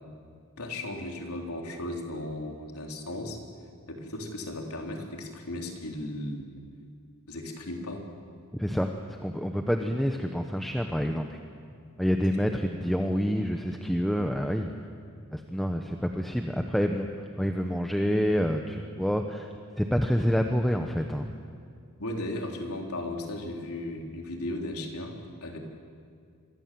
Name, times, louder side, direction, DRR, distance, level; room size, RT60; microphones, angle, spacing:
voice 1, 0.6-3.4 3.9-6.5 7.3-8.0 22.0-25.6, left 1 dB, 85° left, 2 dB, 3.7 m, -36 dB
voice 2, 8.5-8.9 9.2-11.4 12.0-14.7 15.3-17.1 17.4-21.3, equal, ahead, 4 dB, 1.0 m, -27 dB
27.5 x 24.0 x 7.7 m, 2.2 s
head